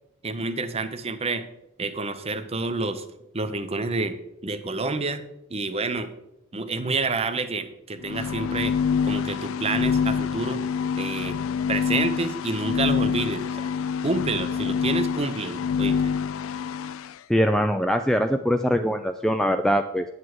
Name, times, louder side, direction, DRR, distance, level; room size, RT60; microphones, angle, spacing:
voice 1, 0.2-1.4 1.8-3.0 3.3-4.2 4.4-5.2 5.5-6.1 6.5-8.8 9.0-10.6 11.0-11.4 11.7-13.7 14.0-16.1, right 3 dB, 30° right, 10 dB, 0.7 m, -28 dB
sound 1, 8.0-17.1, left 6 dB, 75° left, 0.4 m, -26 dB
voice 2, 17.3-20.1, equal, ahead, 7 dB, 0.3 m, -22 dB
9.3 x 8.4 x 4.6 m, 0.84 s
head